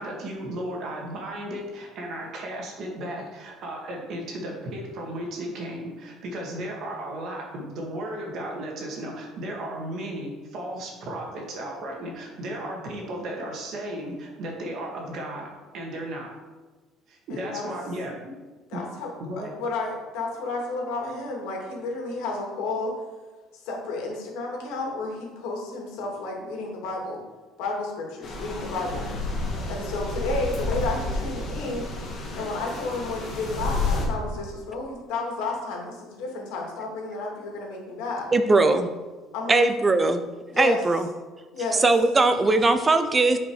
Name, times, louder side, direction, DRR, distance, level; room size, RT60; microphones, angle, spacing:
voice 1, 0.0-16.3 17.1-18.3 18.7-18.8 19.2-19.5, right 1 dB, 45° right, 0 dB, 2.0 m, -35 dB
voice 2, 17.3-17.7 18.7-22.9 23.5-27.2 27.6-29.1 29.7-31.9 32.3-38.3 39.3-39.7 40.5-40.8 41.5-41.8, left 3 dB, 85° left, -1 dB, 2.4 m, -31 dB
sound 1, 28.2-34.1, left 2 dB, 30° left, 1.9 m, -30 dB
voice 3, 38.3-38.9 39.5-40.2 40.6-41.1 41.8-43.4, right 3 dB, 15° right, 9 dB, 0.5 m, -20 dB
9.5 x 5.2 x 4.9 m, 1.3 s
cardioid pair, 170°, 0 cm